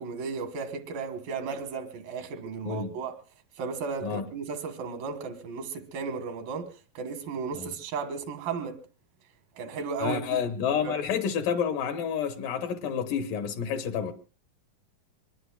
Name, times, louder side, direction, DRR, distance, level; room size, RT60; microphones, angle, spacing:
voice 1, 0.0-3.1 3.6-6.7 6.9-8.8 9.6-10.4 10.8-11.0, right 5 dB, 90° right, 3.2 m, -34 dB
voice 2, 2.6-3.0 4.0-4.2 7.6-7.7 10.0-14.1, left 7 dB, 80° left, 2.8 m, -29 dB
24.0 x 21.5 x 2.3 m
omnidirectional pair, 3.9 m